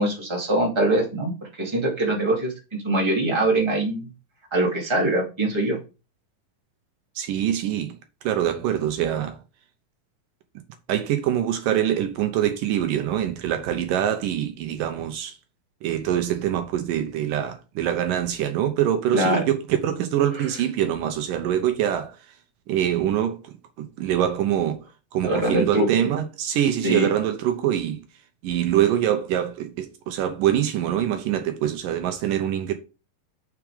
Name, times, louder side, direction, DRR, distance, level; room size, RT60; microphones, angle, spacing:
voice 1, 0.0-1.3 1.6-2.5 2.8-4.1 4.5-5.8 19.1-19.5 25.2-25.9 26.8-27.1, right 1 dB, 10° right, 2.0 m, -22 dB
voice 2, 7.2-9.4 10.9-15.4 15.8-22.2 22.7-24.8 25.1-28.0 28.4-32.7, right 10 dB, 75° right, 2.4 m, -24 dB
7.2 x 6.1 x 4.9 m
omnidirectional pair, 4.1 m